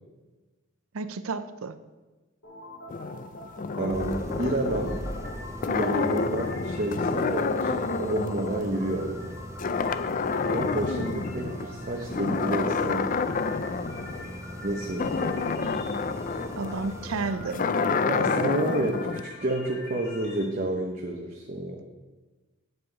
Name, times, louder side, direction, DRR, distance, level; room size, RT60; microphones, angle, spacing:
voice 1, 0.9-1.8 16.6-17.6, right 4 dB, 85° right, 12 dB, 0.6 m, -31 dB
sound 1, 2.4-20.4, left 2 dB, 85° left, 3.1 m, -45 dB
sound 2, 2.9-9.3 9.6-11.6 12.1-19.2, left 4 dB, 40° left, 0.4 m, -29 dB
voice 2, 3.8-5.0 5.7-9.3 10.5-13.3 14.6-15.8 18.0-21.8, right 1 dB, 40° right, 0 dB, 0.9 m, -30 dB
sound 3, 3.9-17.3, right 1 dB, 15° right, 0.6 m, -40 dB
9.5 x 7.9 x 4.9 m, 1.2 s
head